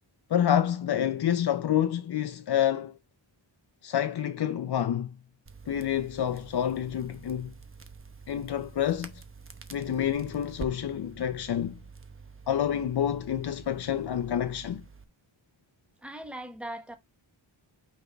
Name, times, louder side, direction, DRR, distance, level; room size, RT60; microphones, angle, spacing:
voice 1, 0.3-2.9 3.8-5.1 5.7-7.5 8.3-9.1 9.7-11.8 12.5-14.8, left 10 dB, 60° left, 0.6 m, -28 dB
Crackle, 5.5-15.0, right 5 dB, 30° right, 0.9 m, -47 dB
voice 2, 16.0-16.9, right 1 dB, 5° right, 1.2 m, -39 dB
5.8 x 5.3 x 3.4 m
wide cardioid pair, 160°, 46 cm